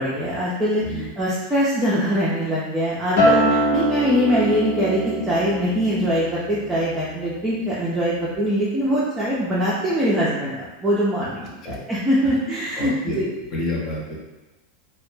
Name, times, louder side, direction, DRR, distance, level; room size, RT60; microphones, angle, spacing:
voice 1, 0.0-13.3, equal, 10° right, -8 dB, 0.5 m, -23 dB
Acoustic guitar, 3.2-7.6 8.0-8.4, right 1 dB, 75° left, 0.7 m, -24 dB
voice 2, 12.7-13.2 13.5-14.2, left 2 dB, 35° left, -3 dB, 0.6 m, -28 dB
2.0 x 2.0 x 3.1 m, 1.1 s
supercardioid pair, 135°, 0 cm